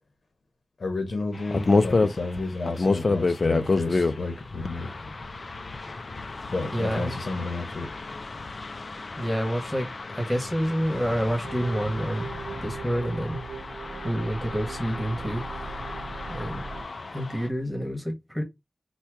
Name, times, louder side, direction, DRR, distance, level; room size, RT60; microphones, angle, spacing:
voice 1, 0.8-4.9 6.5-7.9, left 3 dB, 80° left, 1.0 m, -31 dB
sound 1, 1.3-17.5, left 3 dB, 60° left, 0.5 m, -30 dB
voice 2, 6.7-7.2 9.2-9.9 10.1-12.3 12.6-13.4 14.0-15.4 16.3-16.6 17.1-18.4, equal, 5° right, 1.4 m, -28 dB
sound 2, 11.4-16.9, right 4 dB, 80° right, 0.8 m, -39 dB
4.3 x 2.3 x 4.5 m
wide cardioid pair, 95°, 0 cm